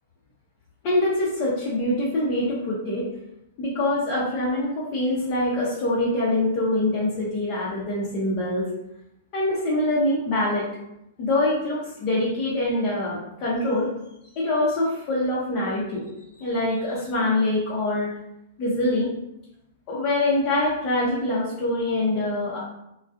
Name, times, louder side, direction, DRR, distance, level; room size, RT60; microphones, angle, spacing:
voice 1, 0.8-3.0 3.6-8.7 9.3-10.7 11.2-13.9 14.4-16.0 16.4-18.1 18.6-19.1 19.9-22.6, left 1 dB, 40° left, -7 dB, 0.7 m, -24 dB
2.5 x 2.3 x 2.3 m, 0.85 s
hypercardioid pair, 140°, 0 cm